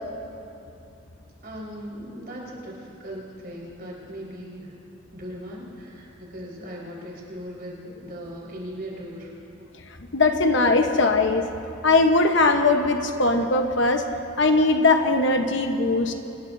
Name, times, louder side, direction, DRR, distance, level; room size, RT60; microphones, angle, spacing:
voice 1, 1.4-4.8 5.1-9.3, equal, 50° right, -4 dB, 4.6 m, -38 dB
voice 2, 10.1-11.4 11.8-14.0 14.4-16.1, left 3 dB, 65° left, 5 dB, 1.1 m, -20 dB
25.5 x 20.5 x 2.7 m, 2.7 s
head